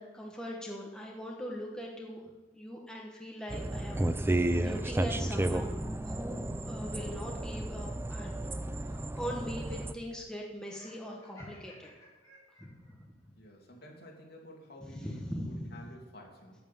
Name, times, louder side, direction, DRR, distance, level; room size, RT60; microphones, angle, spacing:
voice 1, 0.0-2.2 2.5-8.4 8.8-11.9 12.6-12.7 14.8-15.7, equal, 5° left, -2 dB, 1.2 m, -41 dB
sound 1, 3.5-9.9, right 1 dB, 15° right, 0.4 m, -32 dB
Laughter, 10.6-12.9, left 1 dB, 20° left, 3.5 m, -55 dB
voice 2, 13.3-16.6, equal, 60° left, -1 dB, 2.6 m, -51 dB
9.3 x 8.7 x 7.0 m, 1.2 s
head